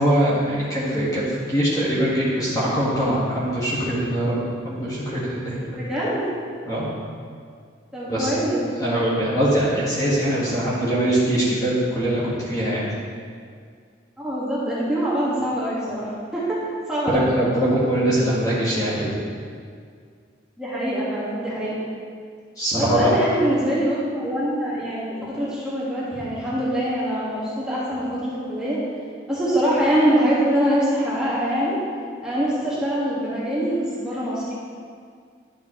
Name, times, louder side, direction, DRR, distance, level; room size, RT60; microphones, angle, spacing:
voice 1, 0.0-4.3 4.6-5.8 6.7-6.9 8.1-8.3 8.8-12.9 17.1-19.1 22.6-23.1 26.1-26.2, right 1 dB, 20° left, -8 dB, 1.7 m, -22 dB
voice 2, 5.8-6.3 7.9-8.6 14.2-16.6 16.9-17.3 20.6-21.8 22.8-28.8 29.3-31.8 32.2-34.4, equal, 5° right, -9 dB, 1.8 m, -24 dB
11.0 x 7.2 x 3.1 m, 2.1 s
head